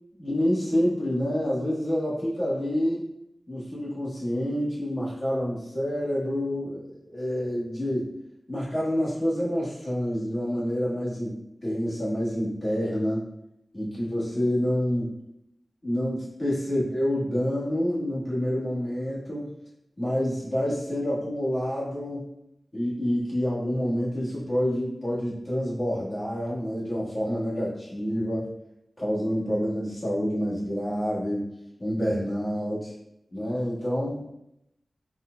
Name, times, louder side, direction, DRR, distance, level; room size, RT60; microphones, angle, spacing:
voice 1, 0.2-3.1 3.5-8.1 8.5-13.2 13.7-15.1 15.8-19.5 20.0-22.2 22.7-28.5 29.0-31.4 31.8-32.9 33.3-34.3, equal, 45° left, -8 dB, 1.5 m, -28 dB
4.2 x 2.5 x 2.2 m, 0.82 s
wide cardioid pair, 65°, 0 cm